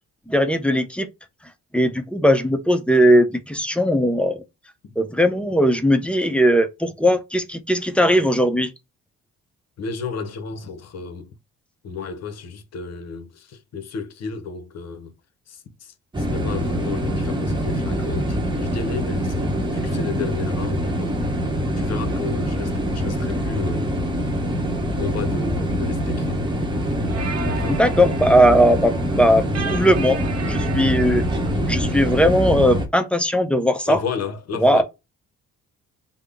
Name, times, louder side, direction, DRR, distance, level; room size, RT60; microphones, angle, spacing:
voice 1, 0.3-1.1 1.7-4.4 5.0-8.7 27.7-31.2 31.7-34.0 34.6-34.8, equal, 5° left, 0.5 m, -18 dB
voice 2, 9.8-11.3 11.8-15.1 15.5-21.2 21.8-23.9 25.0-26.5 27.4-27.8 33.9-34.8, left 5 dB, 60° left, 0.8 m, -33 dB
sound 1, 16.1-32.9, equal, 15° right, 0.9 m, -24 dB
sound 2, 26.6-31.6, right 6 dB, 55° right, 0.6 m, -35 dB
3.5 x 2.0 x 3.4 m
cardioid pair, 90°, 30 cm